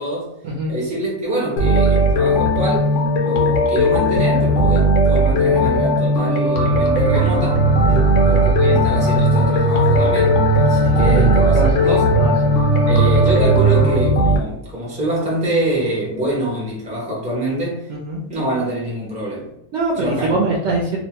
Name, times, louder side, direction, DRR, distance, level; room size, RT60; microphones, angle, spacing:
voice 1, 0.7-2.9 3.2-7.6 8.3-12.1 12.9-17.9 18.3-19.5 20.0-20.3 20.6-20.7, right 1 dB, 5° right, -5 dB, 0.5 m, -25 dB
sound 1, 1.6-14.4, equal, 80° left, 1.1 m, -17 dB
sound 2, 6.6-14.0, right 5 dB, 55° left, 0.7 m, -20 dB
voice 2, 10.9-11.7 12.2-12.3 17.9-18.2 19.7-21.0, right 2 dB, 65° right, -3 dB, 0.8 m, -22 dB
2.7 x 2.2 x 2.8 m, 0.78 s
omnidirectional pair, 1.6 m